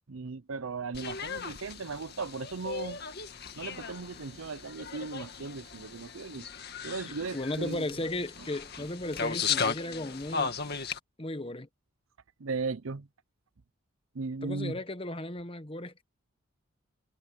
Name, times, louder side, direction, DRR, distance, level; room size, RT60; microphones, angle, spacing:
voice 1, 0.1-3.0 3.5-6.5 6.8-7.9 8.8-8.9 12.4-13.1 14.1-14.8, right 4 dB, 85° right, 0.7 m, -37 dB
sound 1, 0.9-11.0, left 5 dB, 50° left, 1.9 m, -36 dB
voice 2, 7.3-10.5 11.2-11.7 14.4-16.0, left 1 dB, 25° left, 1.2 m, -35 dB
head